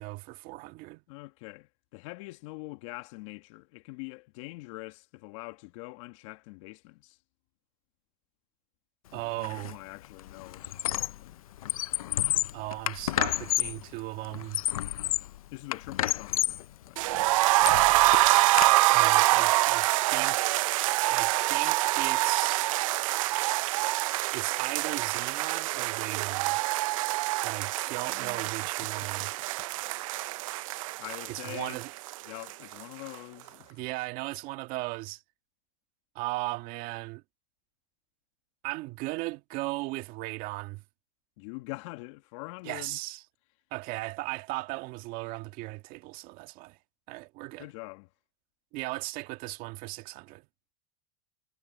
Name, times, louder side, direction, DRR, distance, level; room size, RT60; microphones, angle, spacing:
voice 1, 0.0-1.0 9.1-9.8 12.5-14.6 18.9-20.5 21.1-22.7 24.3-26.6 27.4-29.3 31.3-31.9 33.7-35.2 36.2-37.2 38.6-40.8 42.6-43.2 43.7-46.8 47.1-47.7 48.7-50.4, right 21 dB, 55° right, 1.9 m, -36 dB
voice 2, 1.1-7.2 9.1-11.7 15.5-16.6 16.9-17.3 28.1-28.4 28.8-28.9 31.0-31.8 32.3-33.9 41.4-43.0 47.6-48.1, left 24 dB, 65° left, 1.8 m, -44 dB
Squeak, 9.4-9.7 10.0-11.3 11.6-13.8 14.3-15.4 15.7-16.7 17.1-18.7, left 13 dB, 85° left, 0.6 m, -30 dB
sound 1, 17.0-32.8 33.1-33.2 33.5-33.6, right 20 dB, 70° right, 0.7 m, -26 dB
hypercardioid pair, 110°, 18 cm